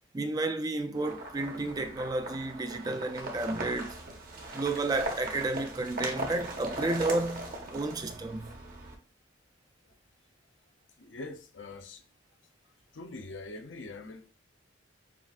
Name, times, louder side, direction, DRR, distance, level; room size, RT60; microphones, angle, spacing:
voice 1, 0.1-4.0 4.5-8.5, right 2 dB, 20° right, 0.3 m, -32 dB
sound 1, 0.9-8.9, right 1 dB, 50° right, 0.9 m, -39 dB
voice 2, 11.0-12.0 12.9-14.3, left 2 dB, 80° left, 0.6 m, -43 dB
7.2 x 2.5 x 2.4 m
head